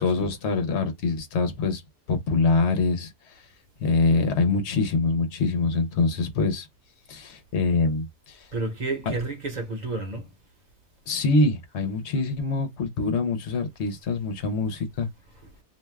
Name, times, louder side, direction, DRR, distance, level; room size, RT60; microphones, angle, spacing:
voice 1, 0.0-1.8 2.1-3.5 3.8-6.7 7.1-8.5 11.1-15.1, left 3 dB, 75° left, 1.0 m, -24 dB
voice 2, 8.5-10.3 15.3-15.6, right 2 dB, 45° right, 0.9 m, -31 dB
2.5 x 2.2 x 3.2 m
omnidirectional pair, 1.2 m